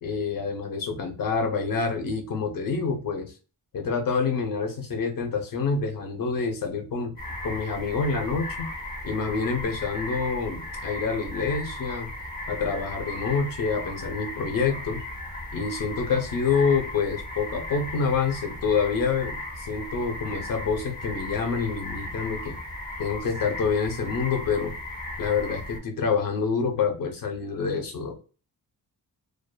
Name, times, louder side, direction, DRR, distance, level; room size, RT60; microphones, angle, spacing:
voice 1, 0.0-3.3 3.7-7.2 7.4-8.7 9.0-12.1 12.5-15.0 15.5-22.6 23.0-24.7 25.2-28.2, left 5 dB, 60° left, 4 dB, 0.7 m, -27 dB
sound 1, 7.2-25.8, left 1 dB, 25° left, 0.8 m, -36 dB
2.4 x 2.3 x 2.2 m, 0.36 s
wide cardioid pair, 165°, 38 cm